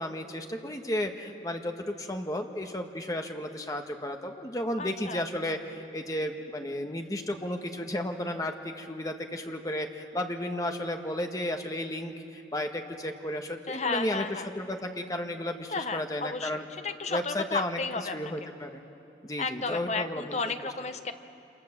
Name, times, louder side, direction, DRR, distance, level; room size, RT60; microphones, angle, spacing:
voice 1, 0.0-14.3 14.6-16.6 17.1-17.8 18.1-18.8 19.2-20.5, left 1 dB, 20° left, 4 dB, 1.6 m, -33 dB
voice 2, 4.8-5.3 13.7-14.5 15.7-18.3 19.4-21.1, left 4 dB, 40° left, 8 dB, 1.1 m, -33 dB
28.0 x 27.0 x 7.5 m, 2.7 s
head